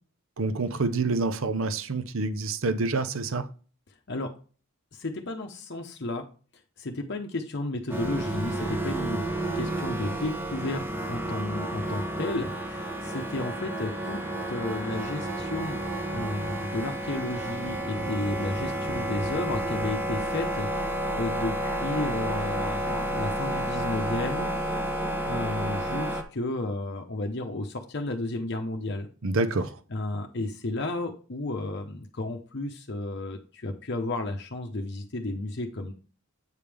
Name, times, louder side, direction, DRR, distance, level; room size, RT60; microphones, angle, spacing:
voice 1, 0.4-3.5 29.2-29.8, right 3 dB, 70° right, 0.7 m, -27 dB
voice 2, 4.9-6.3 6.8-14.2 14.5-15.8 16.1-24.5 25.3-29.1 29.9-35.9, left 2 dB, 50° left, 0.8 m, -33 dB
sound 1, 7.9-26.2, right 1 dB, 10° right, 1.0 m, -31 dB
8.3 x 5.2 x 3.4 m
head